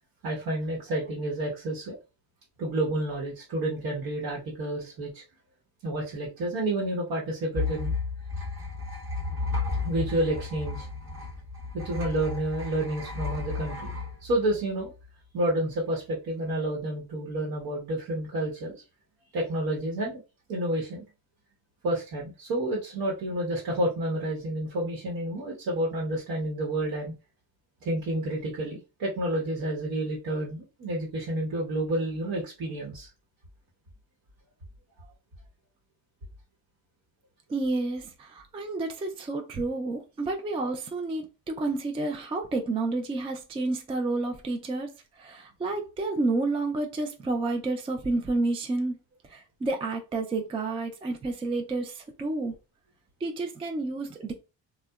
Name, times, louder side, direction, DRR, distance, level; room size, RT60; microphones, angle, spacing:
voice 1, 0.2-2.0 2.6-5.2 5.8-7.9 9.8-10.9 11.7-13.9 14.2-14.9 15.3-18.8 19.3-20.2 20.5-21.0 21.8-27.1 27.8-33.1 35.0-35.1, right 1 dB, 70° right, 1.0 m, -30 dB
sound 1, 7.5-15.1, left 3 dB, 35° right, 0.8 m, -33 dB
voice 2, 37.5-44.9 45.2-49.0 49.3-52.5 53.2-54.3, right 2 dB, 15° right, 0.3 m, -30 dB
2.7 x 2.2 x 2.2 m
cardioid pair, 100°, 36 cm